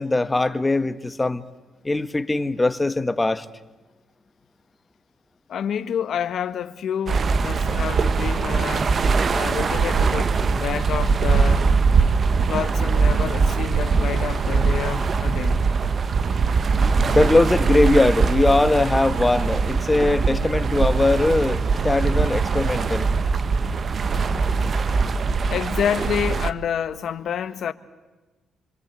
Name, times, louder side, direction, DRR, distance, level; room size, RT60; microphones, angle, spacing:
voice 1, 0.0-1.4 1.8-3.5 17.0-23.1, left 2 dB, 15° left, 1.3 m, -20 dB
voice 2, 5.5-8.9 9.3-11.7 12.4-15.6 25.5-27.7, left 8 dB, 65° left, 1.3 m, -28 dB
sound 1, 7.1-26.5, right 5 dB, 45° right, 1.1 m, -21 dB
26.5 x 26.0 x 8.3 m
cardioid pair, 90°, 0 cm